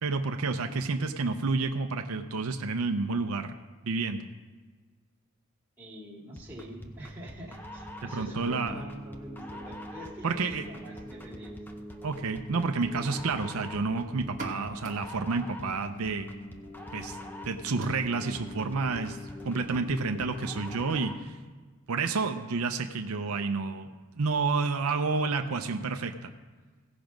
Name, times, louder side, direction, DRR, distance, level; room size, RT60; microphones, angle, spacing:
voice 1, 0.0-3.5 3.8-4.3 8.1-8.8 10.2-10.6 12.0-16.6 16.9-17.2 17.5-19.2 19.4-21.4 21.9-23.9 24.2-26.3, right 4 dB, 75° right, 6 dB, 0.6 m, -30 dB
voice 2, 5.8-11.5, equal, 10° right, -5 dB, 2.2 m, -45 dB
sound 1, 6.4-21.3, equal, 10° left, 0.6 m, -43 dB
sound 2, 14.2-21.7, right 2 dB, 30° right, 1.6 m, -50 dB
17.0 x 6.0 x 5.2 m, 1.4 s
head